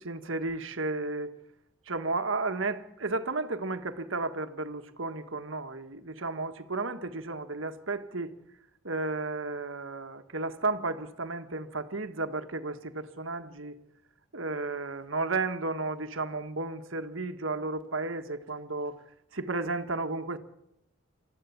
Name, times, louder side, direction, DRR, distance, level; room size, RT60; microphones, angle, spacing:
voice 1, 0.0-1.3 1.9-8.3 8.8-13.8 14.3-19.0 19.3-20.4, right 3 dB, 75° right, 1.7 m, -33 dB
27.0 x 14.0 x 8.6 m
head